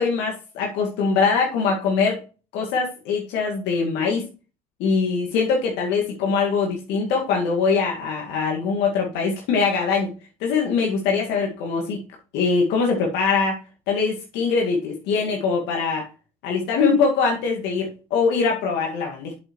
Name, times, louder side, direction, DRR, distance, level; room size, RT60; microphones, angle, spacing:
voice 1, 0.0-2.2 2.5-4.2 4.8-10.1 10.4-12.0 12.3-16.0 16.4-19.3, left 5 dB, 60° left, 0 dB, 2.0 m, -22 dB
8.3 x 7.1 x 3.1 m, 0.33 s
hypercardioid pair, 75°, 20 cm